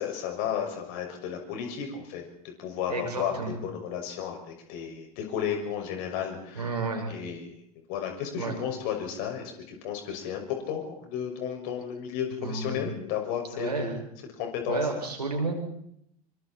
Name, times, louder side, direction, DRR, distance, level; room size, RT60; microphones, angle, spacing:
voice 1, 0.0-2.2 2.6-6.7 7.1-7.6 7.9-14.0 14.4-14.8, left 8 dB, 50° left, 3 dB, 6.1 m, -33 dB
voice 2, 2.9-3.5 6.5-7.1 8.4-8.6 12.3-12.9 13.5-13.9 14.7-15.5, right 3 dB, 80° right, 1 dB, 6.4 m, -31 dB
27.0 x 24.5 x 4.4 m, 0.71 s
figure-of-eight pair, 80°, 20 cm